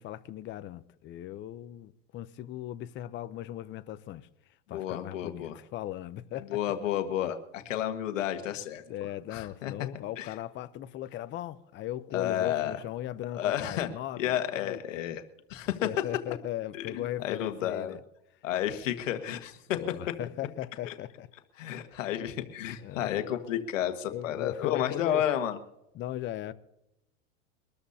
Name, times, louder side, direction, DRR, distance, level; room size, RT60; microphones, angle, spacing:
voice 1, 0.0-4.3 4.7-6.6 8.9-15.0 15.8-18.0 19.7-21.3 22.8-23.2 24.1-25.2 25.9-26.5, left 13 dB, 30° left, 0.7 m, -38 dB
voice 2, 4.7-5.6 6.5-8.8 9.3-9.7 10.2-10.3 12.1-12.7 13.3-13.9 14.2-15.2 15.5-15.9 16.7-17.9 18.4-19.6 20.9-21.0 21.6-25.6, left 11 dB, 85° left, 1.6 m, -31 dB
24.0 x 13.5 x 2.8 m
supercardioid pair, 130°, 37 cm